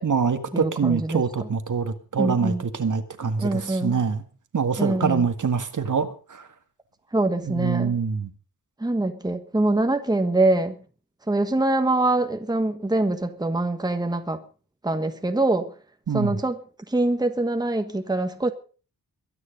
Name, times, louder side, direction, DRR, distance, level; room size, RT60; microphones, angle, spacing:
voice 1, 0.0-4.2 4.5-6.5 7.4-8.3 16.1-16.4, right 5 dB, 55° right, 9 dB, 1.9 m, -25 dB
voice 2, 0.5-1.2 2.2-2.6 3.4-4.0 4.8-5.3 7.1-7.9 8.8-10.7 11.3-14.4 14.8-15.7 16.1-16.6 16.9-18.5, right 2 dB, 10° right, 8 dB, 1.4 m, -24 dB
23.0 x 9.7 x 5.3 m, 0.39 s
wide cardioid pair, 180°, 36 cm